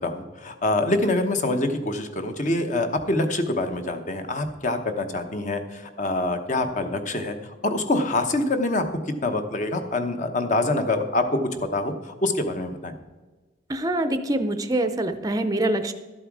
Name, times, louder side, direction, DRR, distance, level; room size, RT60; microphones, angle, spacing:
voice 1, 0.0-11.4 11.7-12.9, left 2 dB, 40° left, 7 dB, 1.0 m, -25 dB
voice 2, 13.7-15.9, right 1 dB, 20° right, 10 dB, 0.6 m, -24 dB
12.5 x 7.7 x 4.8 m, 1.3 s
head